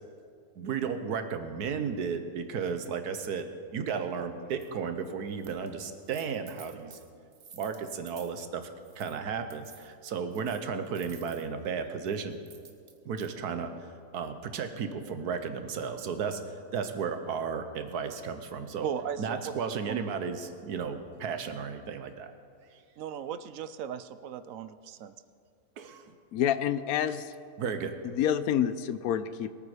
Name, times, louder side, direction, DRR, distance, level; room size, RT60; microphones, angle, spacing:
voice 1, 0.5-7.0 7.5-8.7 8.9-12.4 13.0-18.9 19.2-22.3 22.7-22.8 25.8-26.1 27.6-28.0, right 6 dB, 90° right, 8 dB, 1.5 m, -34 dB
sound 1, 4.6-4.7 5.3-5.7 6.0-8.4 8.8-9.2 9.5-11.5 12.1-13.3, right 6 dB, 50° right, 1.4 m, -53 dB
voice 2, 18.8-19.2 19.4-19.5 19.9-20.0 23.0-25.1, right 9 dB, 70° right, 13 dB, 0.9 m, -36 dB
voice 3, 26.3-27.3 28.0-29.5, left 10 dB, 75° left, 13 dB, 1.0 m, -28 dB
22.0 x 9.1 x 5.0 m, 2.3 s
omnidirectional pair, 1.6 m